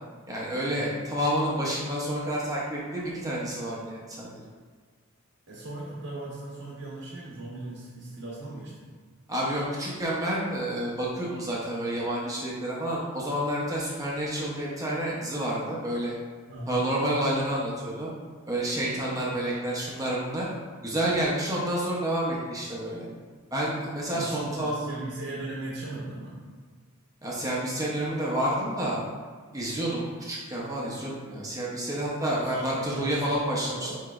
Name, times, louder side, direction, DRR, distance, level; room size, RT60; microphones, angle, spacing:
voice 1, 0.3-4.3 9.3-16.1 16.7-18.1 18.5-20.5 20.8-23.1 23.5-24.7 27.2-29.0 29.5-33.9, right 1 dB, 15° right, -5 dB, 0.6 m, -29 dB
voice 2, 5.5-8.9 16.5-16.8 24.1-26.4 32.2-34.0, right 2 dB, 60° right, -6 dB, 0.9 m, -38 dB
4.8 x 4.5 x 2.4 m, 1.5 s
head